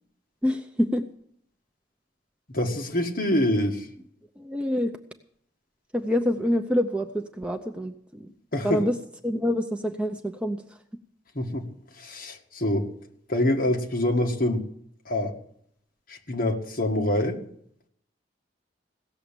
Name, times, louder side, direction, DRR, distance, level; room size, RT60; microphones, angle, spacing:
voice 1, 0.4-1.0 4.4-4.9 5.9-8.3 8.6-9.0 9.2-10.8, equal, 5° right, 5 dB, 0.6 m, -26 dB
voice 2, 2.5-3.9 8.5-8.9 11.4-11.7 12.0-12.9 13.3-14.7 15.1-15.4 16.1-17.4, left 1 dB, 45° left, 1 dB, 1.9 m, -25 dB
17.0 x 7.1 x 8.8 m, 0.69 s
head